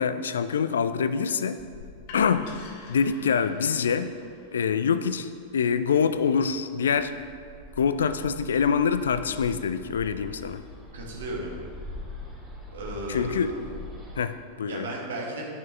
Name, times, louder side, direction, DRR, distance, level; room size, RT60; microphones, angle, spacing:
voice 1, 0.0-1.6 2.1-2.6 2.9-4.2 4.5-7.1 7.8-10.6 13.1-13.5 14.2-14.9, left 6 dB, 65° left, 12 dB, 0.3 m, -25 dB
sound 1, 1.6-7.4, left 4 dB, 50° left, 0.9 m, -49 dB
Bird, 6.9-14.2, left 1 dB, 5° right, 1.8 m, -42 dB
voice 2, 10.9-11.5 12.7-13.7 14.7-15.4, right 1 dB, 65° right, -2 dB, 1.6 m, -34 dB
10.0 x 6.0 x 3.3 m, 2.3 s
figure-of-eight pair, 90°, 0 cm